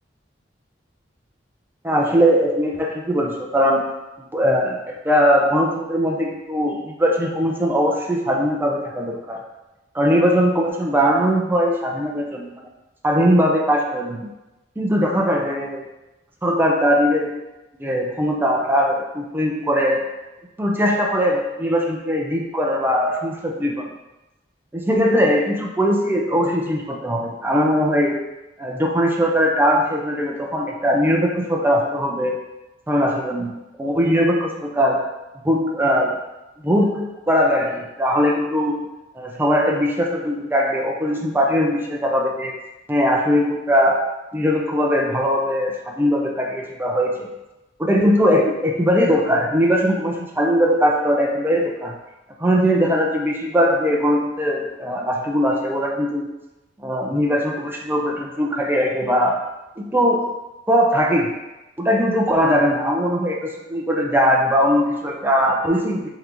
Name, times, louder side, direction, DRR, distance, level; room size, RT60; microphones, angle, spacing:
voice 1, 1.8-3.9 4.3-9.4 9.9-12.5 13.0-14.3 14.8-15.9 16.4-17.3 17.8-20.1 20.6-23.9 24.7-28.2 28.6-32.4 32.9-35.0 35.4-36.2 36.6-38.9 39.2-42.6 42.9-44.0 44.3-47.3 47.8-52.0 52.4-56.3 56.8-59.4 59.8-60.3 60.7-61.4 61.8-66.1, equal, 10° right, -1 dB, 0.5 m, -20 dB
3.8 x 3.4 x 3.0 m, 1.0 s
head